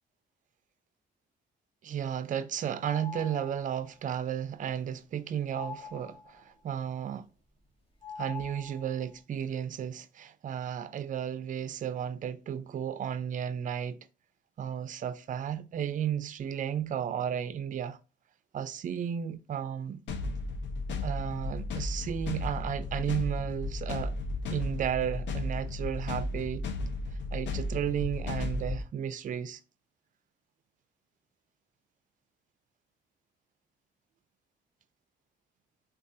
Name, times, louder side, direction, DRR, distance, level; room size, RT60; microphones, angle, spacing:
voice 1, 1.8-7.3 8.2-14.0 14.6-18.0 18.5-20.0 21.0-24.1 24.5-26.6 27.3-29.6, right 9 dB, 40° right, 0.4 m, -33 dB
sound 1, 2.8-3.8 5.5-6.5 8.0-9.1, left 6 dB, 30° left, 0.7 m, -44 dB
sound 2, 20.1-28.8, left 2 dB, 65° left, 0.6 m, -34 dB
3.7 x 2.3 x 2.5 m
cardioid pair, 90°, 20 cm